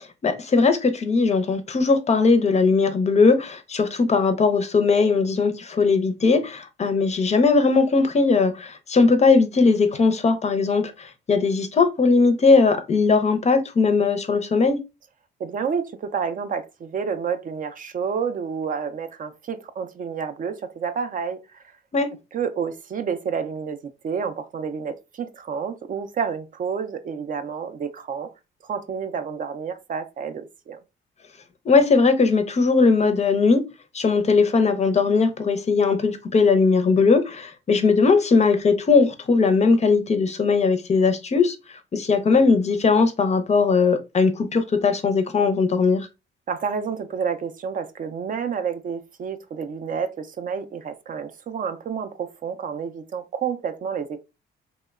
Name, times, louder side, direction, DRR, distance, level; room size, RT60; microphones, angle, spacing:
voice 1, 0.2-14.8 21.9-22.1 31.7-33.6 33.9-41.6 41.9-46.1, left 4 dB, 35° left, 0.5 m, -19 dB
voice 2, 15.4-21.6 22.3-23.8 24.0-28.3 28.6-30.8 46.5-54.2, right 6 dB, 45° right, 0.4 m, -29 dB
2.8 x 2.1 x 2.2 m
cardioid pair, 90°, 20 cm